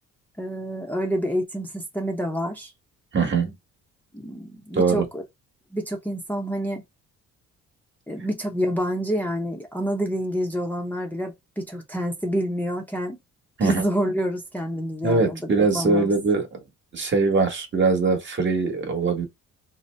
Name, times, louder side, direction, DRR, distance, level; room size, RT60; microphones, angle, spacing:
voice 1, 0.4-2.7 4.1-5.2 5.7-6.8 8.1-13.2 13.6-16.1, equal, 5° left, 0.7 m, -28 dB
voice 2, 3.1-3.5 4.7-5.1 13.6-13.8 15.0-16.6 16.9-19.3, right 4 dB, 40° right, 1.2 m, -22 dB
2.8 x 2.0 x 3.2 m
cardioid pair, 90°, 30 cm